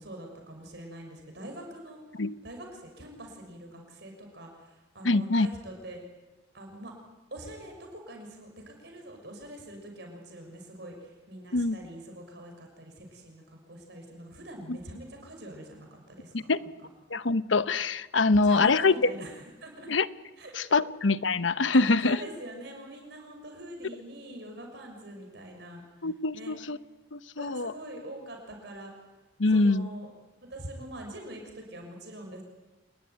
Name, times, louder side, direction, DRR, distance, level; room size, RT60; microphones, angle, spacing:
voice 1, 0.0-2.0 2.4-6.0 6.5-6.9 7.3-16.7 18.4-19.3 19.6-19.9 20.4-20.5 22.0-25.8 26.3-26.5 27.4-28.9 29.5-30.1 30.5-32.4, right 1 dB, 60° right, 3 dB, 6.2 m, -44 dB
voice 2, 5.0-5.5 11.5-11.8 14.7-14.8 16.5-16.6 17.1-18.9 19.9-20.1 20.5-22.2 26.0-26.8 27.1-27.7 29.4-29.9, left 3 dB, 85° left, 14 dB, 1.0 m, -24 dB
28.0 x 21.0 x 9.6 m, 1.1 s
head